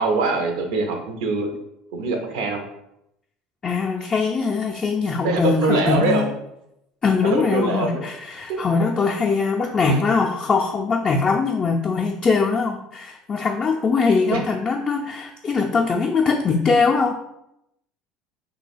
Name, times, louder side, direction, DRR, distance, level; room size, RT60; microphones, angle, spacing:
voice 1, 0.0-1.5 1.9-2.6 5.2-6.3 7.3-8.0 8.5-8.6 14.3-14.4, right 3 dB, 75° right, 4 dB, 0.6 m, -23 dB
voice 2, 3.6-6.3 7.0-17.1, left 4 dB, 30° left, 0 dB, 0.4 m, -21 dB
2.8 x 2.2 x 4.1 m, 0.82 s
hypercardioid pair, 70°, 3 cm